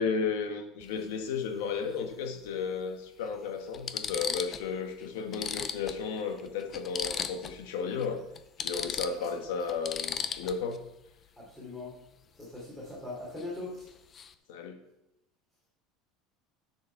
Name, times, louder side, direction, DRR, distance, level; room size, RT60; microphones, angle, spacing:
voice 1, 0.0-8.2 8.6-10.8 14.5-14.8, left 5 dB, 85° left, 5 dB, 1.6 m, -33 dB
sound 1, 0.8-1.0 2.5-2.6 3.2-3.3 3.7-4.7 5.0-5.1 5.3-7.6 7.9-8.1 8.4-10.8 13.4-13.6 13.9-14.3, left 7 dB, 30° left, 0.5 m, -36 dB
voice 2, 11.4-12.0 12.3-13.9, left 2 dB, 10° left, -6 dB, 3.0 m, -41 dB
9.7 x 6.4 x 4.7 m, 0.86 s
cardioid pair, 150°, 0 cm